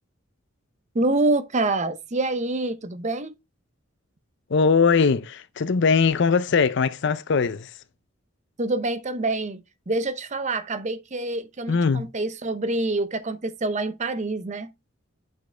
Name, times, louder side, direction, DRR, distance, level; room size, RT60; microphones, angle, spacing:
voice 1, 0.9-3.3 8.6-14.7, right 2 dB, 35° right, 0.6 m, -26 dB
voice 2, 4.5-7.7 11.7-12.1, left 5 dB, 60° left, 0.5 m, -21 dB
6.3 x 5.2 x 3.3 m
head